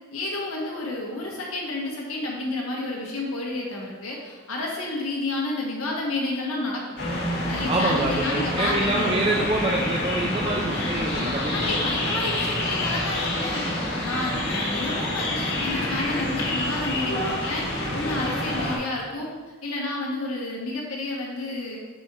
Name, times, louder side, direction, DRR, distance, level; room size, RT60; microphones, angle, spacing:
voice 1, 0.1-6.8 7.5-9.5 11.5-13.6 14.0-19.3 19.6-21.8, left 2 dB, 80° left, -2 dB, 1.4 m, -30 dB
sound 1, 7.0-18.8, left 1 dB, 55° left, 1.6 m, -27 dB
voice 2, 7.7-11.8, right 2 dB, 25° right, -2 dB, 0.4 m, -26 dB
5.4 x 4.3 x 4.7 m, 1.3 s
head